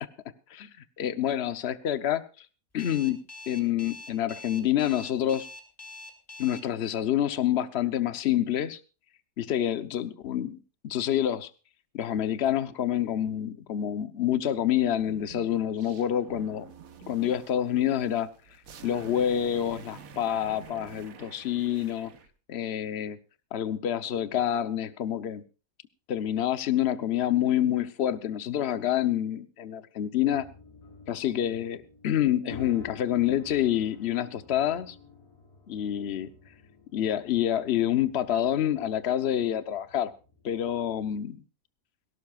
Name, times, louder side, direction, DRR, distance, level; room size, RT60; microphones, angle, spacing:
voice 1, 1.0-2.5 2.7-5.5 6.4-8.8 9.4-10.6 10.8-11.5 11.9-16.7 17.1-18.3 18.8-22.1 22.5-23.2 23.5-25.4 26.1-30.5 31.1-35.0 35.7-36.3 36.9-40.1 40.4-41.4, left 11 dB, 50° left, 1.0 m, -27 dB
Alarm, 2.8-6.6, left 3 dB, 10° left, 2.5 m, -44 dB
sound 1, 14.9-22.3, right 7 dB, 60° right, 1.5 m, -48 dB
sound 2, 30.3-41.2, left 5 dB, 85° left, 4.5 m, -51 dB
19.0 x 16.5 x 2.4 m
omnidirectional pair, 1.7 m